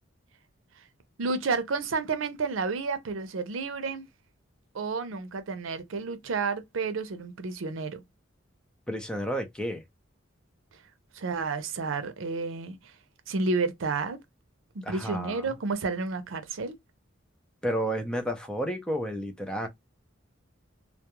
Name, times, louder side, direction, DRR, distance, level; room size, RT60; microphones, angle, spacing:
voice 1, 1.2-4.0 4.7-8.0 11.2-12.8 13.3-14.2 14.7-16.8, right 4 dB, 90° right, 0.5 m, -31 dB
voice 2, 8.9-9.8 14.8-15.4 17.6-19.7, equal, 5° left, 0.5 m, -31 dB
2.3 x 2.1 x 2.8 m
head